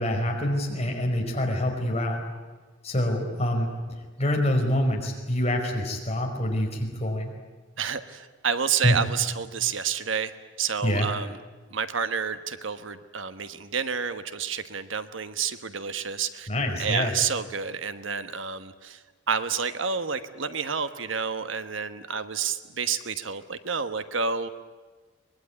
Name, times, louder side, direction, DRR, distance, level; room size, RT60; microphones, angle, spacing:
voice 1, 0.0-2.2 2.8-3.7 4.2-7.3 8.8-8.9 10.8-11.1 16.5-17.1, left 1 dB, 30° left, 1 dB, 4.9 m, -26 dB
voice 2, 7.8-10.3 10.6-11.3 11.7-16.5 16.8-24.5, right 6 dB, 75° right, 11 dB, 1.2 m, -29 dB
24.0 x 20.5 x 9.7 m, 1.3 s
head